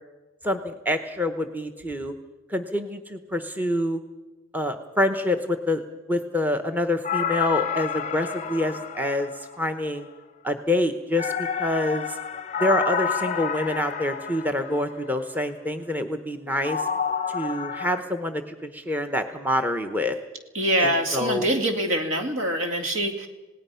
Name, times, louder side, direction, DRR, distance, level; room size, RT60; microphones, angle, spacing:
voice 1, 0.4-2.1 2.5-4.0 4.5-5.8 6.1-9.3 9.6-10.1 10.4-12.2 12.6-16.9 17.3-20.2 20.8-21.5, left 1 dB, 10° right, 7 dB, 0.9 m, -26 dB
sound 1, 7.0-9.9 11.2-15.0 16.6-18.0, left 7 dB, 30° left, 0.6 m, -29 dB
voice 2, 20.5-23.3, right 1 dB, 65° right, 5 dB, 2.5 m, -24 dB
27.5 x 18.0 x 5.7 m, 1.1 s
head